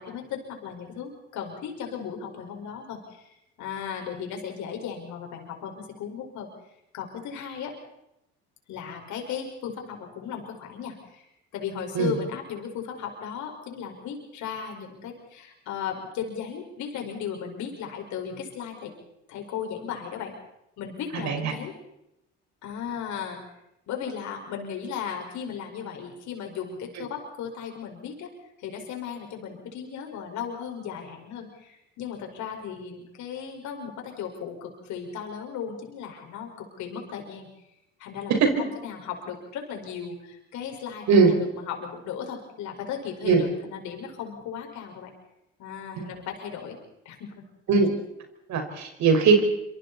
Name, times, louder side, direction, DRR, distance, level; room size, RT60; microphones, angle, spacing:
voice 1, 0.0-6.5 6.9-7.7 8.7-11.3 11.5-18.9 19.3-20.3 20.8-21.7 22.6-23.4 23.9-28.3 28.6-37.5 38.0-45.1 45.6-46.8 47.1-47.4, left 7 dB, 65° left, 2 dB, 5.2 m, -36 dB
voice 2, 48.5-49.4, right 5 dB, 65° right, 4 dB, 5.3 m, -20 dB
26.5 x 25.5 x 4.2 m, 0.83 s
hypercardioid pair, 65°, 31 cm